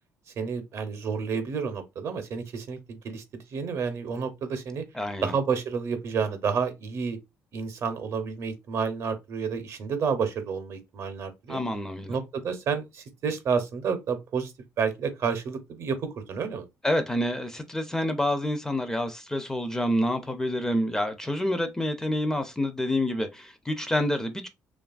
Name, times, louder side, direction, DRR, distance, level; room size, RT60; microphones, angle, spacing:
voice 1, 0.4-4.8 5.2-7.2 7.5-11.6 12.1-14.5 14.8-16.7, right 6 dB, 55° right, 0.6 m, -30 dB
voice 2, 4.9-5.3 11.5-12.2 16.8-24.5, left 1 dB, 10° left, 0.4 m, -28 dB
2.8 x 2.3 x 2.3 m
cardioid pair, 110°, 6 cm